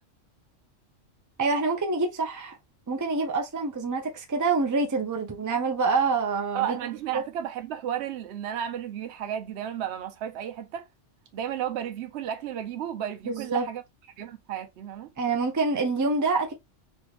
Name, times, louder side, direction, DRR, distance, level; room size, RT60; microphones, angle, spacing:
voice 1, 1.4-2.5 2.9-6.8 7.1-7.2 13.2-13.7 15.2-16.5, right 4 dB, 20° right, 0.5 m, -26 dB
voice 2, 6.5-10.9 11.3-13.8 14.2-15.1, right 10 dB, 65° right, 0.9 m, -33 dB
3.4 x 3.0 x 2.4 m
omnidirectional pair, 1.3 m